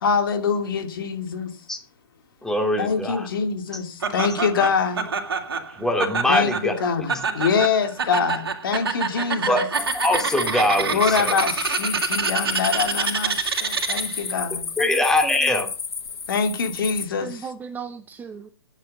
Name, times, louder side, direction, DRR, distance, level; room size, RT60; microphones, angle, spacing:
voice 1, 0.0-1.5 2.8-5.1 6.3-9.7 10.9-14.7 16.3-17.4, left 5 dB, 60° left, 2.7 m, -24 dB
voice 2, 2.4-3.3 5.8-6.7 9.5-11.3 14.8-15.7, left 1 dB, 5° left, 2.7 m, -22 dB
Laughter, 4.0-14.3, right 5 dB, 70° right, 2.9 m, -27 dB
sound 1, 9.7-17.1, left 5 dB, 80° left, 1.2 m, -32 dB
voice 3, 14.8-15.6 17.2-18.5, right 6 dB, 15° right, 0.8 m, -36 dB
11.5 x 9.5 x 6.7 m
figure-of-eight pair, 125°, 13 cm